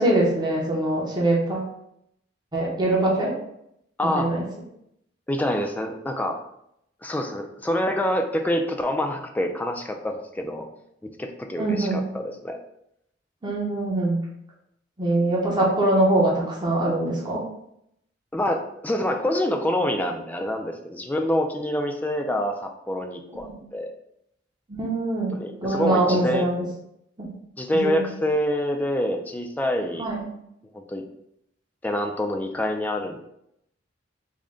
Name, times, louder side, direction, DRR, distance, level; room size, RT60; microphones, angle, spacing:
voice 1, 0.0-1.7 2.5-3.3 4.1-4.4 11.6-12.0 13.4-14.2 15.0-17.4 23.5-23.6 24.8-25.3 25.6-26.6 27.2-27.3 27.7-28.1 30.0-30.2, right 2 dB, 25° right, -4 dB, 0.7 m, -23 dB
voice 2, 4.0-4.3 5.3-6.4 7.0-10.6 11.0-12.6 18.3-23.9 25.3-26.5 27.6-30.1 30.7-31.0 31.8-33.2, left 1 dB, 10° left, 3 dB, 0.3 m, -26 dB
3.6 x 2.1 x 3.7 m, 0.77 s
head